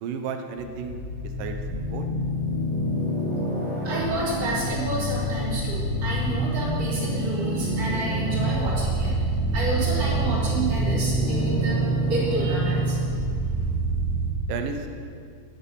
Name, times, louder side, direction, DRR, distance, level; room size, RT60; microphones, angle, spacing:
voice 1, 0.0-1.0 1.4-1.6 1.9-2.1 14.5-14.9, right 6 dB, 80° right, 5 dB, 2.6 m, -32 dB
sound 1, 0.6-14.3, right 1 dB, 45° left, 3.9 m, -26 dB
voice 2, 3.8-9.1 9.5-13.0, right 2 dB, 45° right, -8 dB, 4.9 m, -30 dB
12.0 x 11.0 x 5.7 m, 2.2 s
omnidirectional pair, 3.9 m